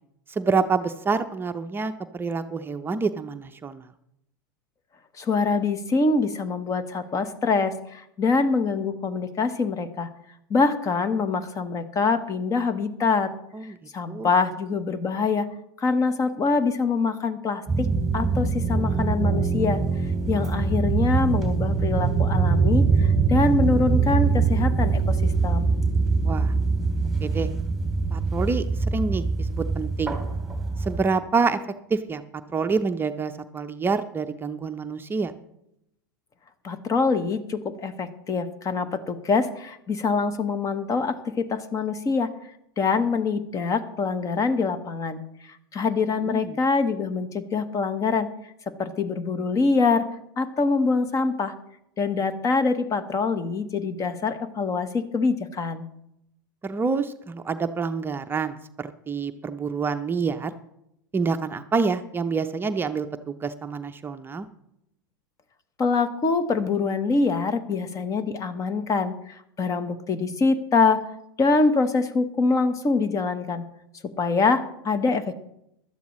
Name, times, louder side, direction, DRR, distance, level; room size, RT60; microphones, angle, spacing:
voice 1, 0.3-3.9 13.5-13.7 14.1-14.3 26.2-26.5 27.2-27.5 28.1-30.2 30.8-31.6 31.9-32.2 32.5-35.3 46.3-46.6 56.6-60.5 61.1-64.5, right 4 dB, 20° right, 8 dB, 0.7 m, -27 dB
voice 2, 5.2-10.1 10.5-13.3 13.9-15.5 15.8-17.9 18.1-19.8 20.3-25.7 36.6-42.3 42.8-45.2 45.7-48.3 48.8-50.0 50.4-51.5 52.0-55.9 65.8-71.0 71.4-73.7 74.2-75.3, left 4 dB, 30° left, 12 dB, 1.2 m, -24 dB
sound 1, 17.7-31.0, right 4 dB, 5° right, 2.4 m, -23 dB
16.5 x 12.5 x 3.1 m, 0.79 s
hypercardioid pair, 95°, 11 cm